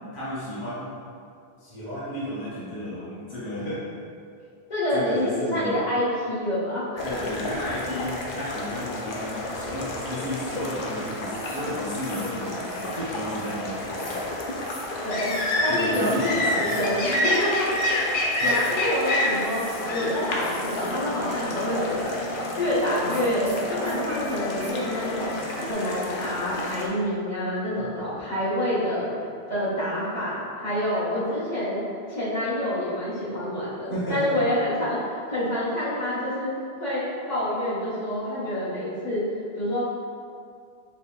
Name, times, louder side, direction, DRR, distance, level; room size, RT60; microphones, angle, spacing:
voice 1, 0.1-1.0 1.6-3.9 4.9-5.8 7.0-14.2 15.7-16.8 18.4-18.5 33.9-34.4, left 1 dB, 25° left, -10 dB, 0.8 m, -33 dB
voice 2, 4.7-7.0 15.0-15.3 15.6-17.7 18.0-19.6 19.9-22.2 22.6-25.3 25.7-29.1 29.5-31.8 32.1-35.0 35.3-36.5 36.8-39.2 39.5-39.8, left 1 dB, 45° left, -11 dB, 1.2 m, -27 dB
sound 1, 7.0-26.9, left 1 dB, 60° left, 0.7 m, -29 dB
sound 2, 11.3-11.7 12.0-12.4 12.7-13.0 13.3-13.6 14.0-14.3 14.6-14.9 15.3-15.5 15.9-16.3 16.6-16.9 17.3-17.4 18.3-18.8 19.3-19.9 20.4-21.0 21.2-21.3 23.1-24.7, left 1 dB, 80° left, 1.8 m, -45 dB
sound 3, 19.8-20.4 20.7-25.7, left 2 dB, 85° right, 0.9 m, -39 dB
4.2 x 3.3 x 2.3 m, 2.3 s
omnidirectional pair, 1.1 m